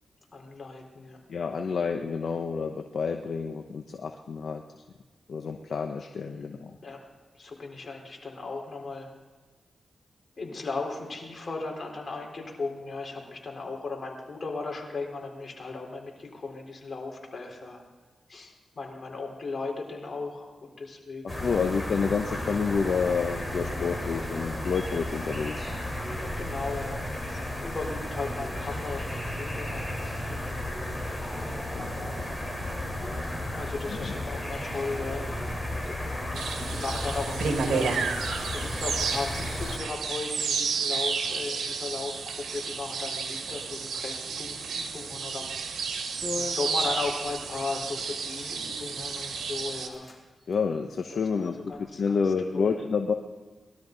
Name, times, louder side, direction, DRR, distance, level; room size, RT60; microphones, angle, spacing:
voice 1, 0.3-1.2 6.3-6.6 6.8-7.0 7.4-9.1 10.4-17.8 18.3-21.6 26.2-27.0 27.3-30.6 32.2-32.4 33.0-35.3 35.9-38.0 38.5-42.2 42.5-45.8 46.3-50.1 51.1-52.2 52.5-52.8, left 3 dB, 50° left, 0 dB, 4.0 m, -37 dB
voice 2, 1.3-4.6 5.3-6.8 21.2-25.7 31.7-31.9 33.9-34.2 50.5-51.5 52.0-53.1, left 5 dB, 70° left, 4 dB, 0.9 m, -29 dB
sound 1, 21.3-39.8, left 1 dB, 10° left, 4.2 m, -33 dB
sound 2, 36.3-49.9, right 5 dB, 90° right, 1.8 m, -31 dB
sound 3, 45.6-45.7 46.2-47.3 48.3-48.8 49.3-49.4 49.7-50.2 50.4-50.6 51.1-51.8, left 3 dB, 25° left, 4.5 m, -40 dB
20.5 x 12.5 x 4.0 m, 1.3 s
cardioid pair, 65°, 0 cm